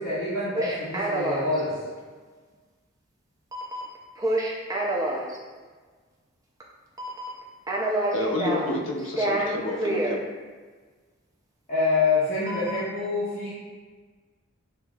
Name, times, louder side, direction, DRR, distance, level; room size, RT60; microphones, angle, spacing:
voice 1, 0.0-1.7 11.7-13.5, left 3 dB, 35° left, -13 dB, 1.0 m, -26 dB
sound 1, 0.5-1.6 3.5-5.4 6.6-6.7 7.0-7.4 7.7-8.7 9.0-10.2 12.5-12.8, right 1 dB, 15° right, 0.4 m, -27 dB
voice 2, 8.1-10.2, left 2 dB, 60° left, 1 dB, 0.5 m, -29 dB
6.4 x 2.6 x 2.3 m, 1.4 s
head